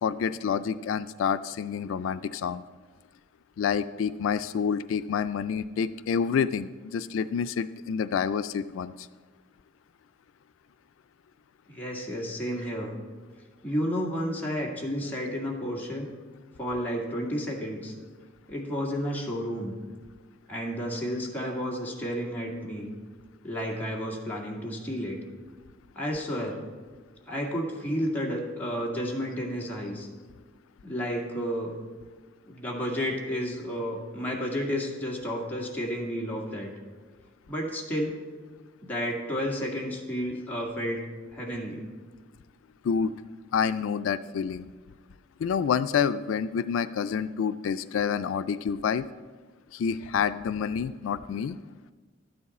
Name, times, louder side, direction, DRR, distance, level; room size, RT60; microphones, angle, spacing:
voice 1, 0.0-2.6 3.6-9.1 32.7-32.8 42.8-43.1 43.5-44.7 45.4-49.0 49.7-51.6, left 7 dB, 85° left, 13 dB, 0.3 m, -28 dB
voice 2, 11.7-12.9 13.6-16.1 16.6-17.9 18.5-19.7 20.5-22.9 23.4-25.2 26.0-26.6 27.3-30.1 30.8-31.7 32.5-36.7 37.5-38.1 38.8-41.1 41.3-41.8, equal, 10° left, -3 dB, 1.9 m, -31 dB
12.5 x 9.6 x 4.2 m, 1.5 s
head